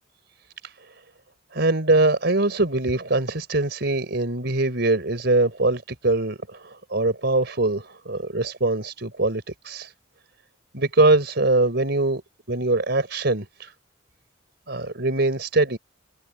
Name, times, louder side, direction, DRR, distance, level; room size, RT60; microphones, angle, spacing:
voice 1, 1.5-9.9 10.7-12.2 12.5-13.7 14.7-15.8, right 2 dB, 60° right, 4.4 m, -22 dB
head